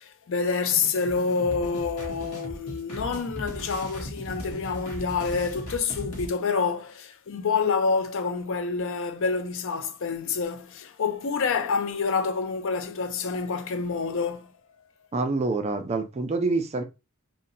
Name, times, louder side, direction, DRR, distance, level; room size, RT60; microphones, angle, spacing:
voice 1, 0.0-14.5, left 5 dB, 60° left, 0.5 m, -27 dB
sound 1, 0.7-6.3, equal, 85° left, 0.9 m, -38 dB
voice 2, 15.1-16.8, right 3 dB, 30° right, 0.4 m, -26 dB
2.7 x 2.1 x 3.9 m
head